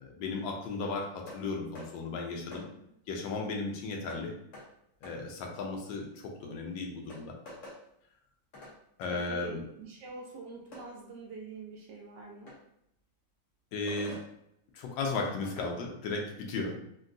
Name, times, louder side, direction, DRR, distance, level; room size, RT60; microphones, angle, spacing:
voice 1, 0.0-2.7 3.1-4.4 5.0-7.4 9.0-9.6 13.7-14.2 14.7-16.7, left 3 dB, 80° left, 1 dB, 1.3 m, -35 dB
sound 1, 1.3-1.4 1.7-1.9 2.5-2.7 4.1-4.2 4.5-4.7 5.0-5.2 6.5-6.6 7.1-7.8 8.5-8.7 9.0-9.1 10.7-10.9 12.5-12.6 13.9-14.3 15.2-15.7, left 1 dB, 50° left, 1.2 m, -47 dB
voice 2, 9.1-12.5, right 3 dB, 70° right, -1 dB, 1.1 m, -44 dB
3.7 x 2.2 x 2.5 m, 0.77 s
omnidirectional pair, 2.1 m